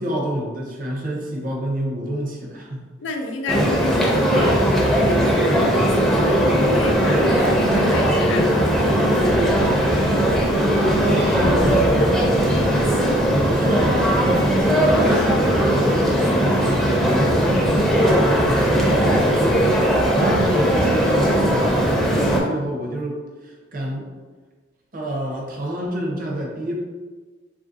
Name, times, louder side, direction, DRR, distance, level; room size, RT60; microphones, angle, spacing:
voice 1, 0.0-2.9 11.0-11.9 13.3-17.7 18.1-19.6 20.2-24.1 24.9-26.8, equal, 45° right, -1 dB, 0.6 m, -28 dB
voice 2, 3.0-9.4, left 2 dB, 80° left, 3 dB, 0.5 m, -30 dB
sound 1, 3.5-22.4, equal, ahead, 0.4 m, -18 dB
3.0 x 2.5 x 2.6 m, 1.4 s
head